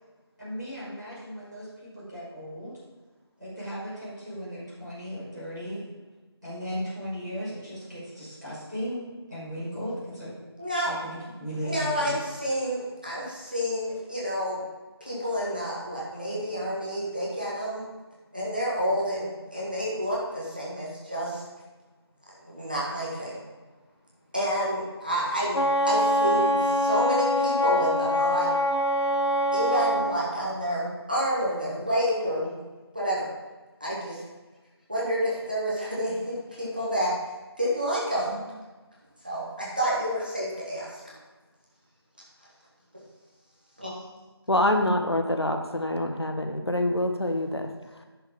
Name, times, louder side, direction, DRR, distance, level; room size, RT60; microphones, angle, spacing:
voice 1, 0.4-2.8 3.4-5.8 6.4-10.3 10.8-12.1, equal, ahead, -35 dB, 2.1 m, -36 dB
voice 2, 10.6-10.9 11.6-14.6 15.0-17.8 18.3-21.4 22.4-23.4 24.3-25.6 25.8-28.5 29.5-32.5 32.9-33.3 33.8-34.2 34.9-37.1 37.6-38.4 39.2-41.0 43.8-43.9, equal, 20° right, -6 dB, 1.5 m, -29 dB
Wind instrument woodwind instrument, 25.5-30.1, equal, 90° left, 1.0 m, -24 dB
voice 3, 44.5-47.7, left 1 dB, 70° left, 5 dB, 1.3 m, -25 dB
10.0 x 6.6 x 5.3 m, 1.3 s
figure-of-eight pair, 180°, 14 cm